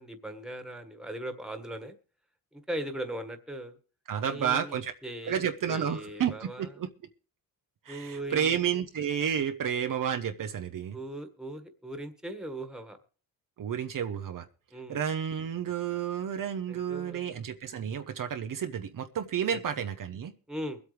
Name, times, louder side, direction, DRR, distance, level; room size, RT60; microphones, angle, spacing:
voice 1, 0.0-1.9 2.5-3.8 4.2-6.7 7.9-8.5 10.9-13.0 14.7-15.0 16.7-17.3 19.5-19.6 20.5-20.8, right 1 dB, ahead, 7 dB, 1.7 m, -39 dB
voice 2, 4.1-4.9 5.2-6.9 7.9-11.0 13.6-14.4 14.9-20.3, right 8 dB, 55° right, 6 dB, 1.0 m, -31 dB
23.0 x 8.2 x 3.4 m, 0.39 s
cardioid pair, 100°, 38 cm